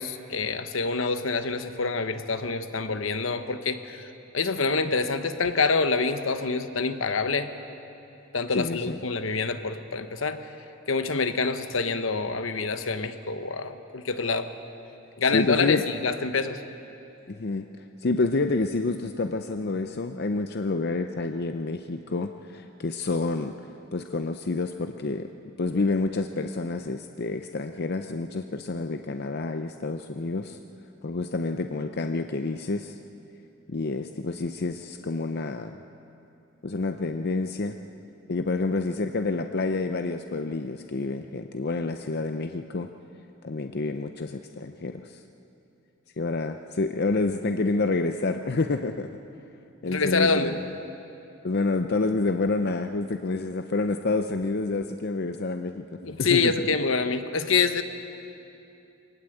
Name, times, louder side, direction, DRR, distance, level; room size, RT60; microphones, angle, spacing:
voice 1, 0.0-4.0 4.3-7.5 8.3-10.5 10.9-14.5 15.2-16.6 49.8-50.6 56.0-57.8, left 4 dB, 75° left, 9 dB, 1.1 m, -26 dB
voice 2, 8.5-9.0 15.3-15.8 17.3-17.7 18.0-23.5 23.9-25.3 25.6-30.6 31.0-33.0 33.7-35.8 36.6-37.8 38.3-42.9 43.4-45.2 46.2-49.1 49.8-50.5 51.4-55.9 56.2-56.7, left 3 dB, 55° left, 7 dB, 0.6 m, -28 dB
23.5 x 18.5 x 7.9 m, 2.8 s
head